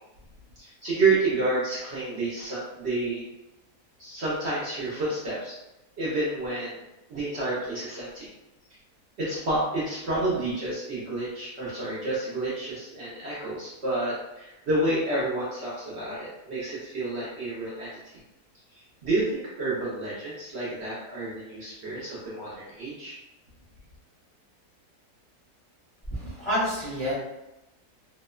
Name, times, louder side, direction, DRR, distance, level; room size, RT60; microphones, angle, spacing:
voice 1, 0.6-3.3 4.0-5.6 6.0-6.8 7.1-8.3 9.2-18.0 18.7-23.2, right 2 dB, 60° right, -8 dB, 0.7 m, -29 dB
voice 2, 26.1-27.1, equal, 25° left, -11 dB, 0.7 m, -28 dB
2.8 x 2.0 x 2.2 m, 0.94 s
omnidirectional pair, 1.7 m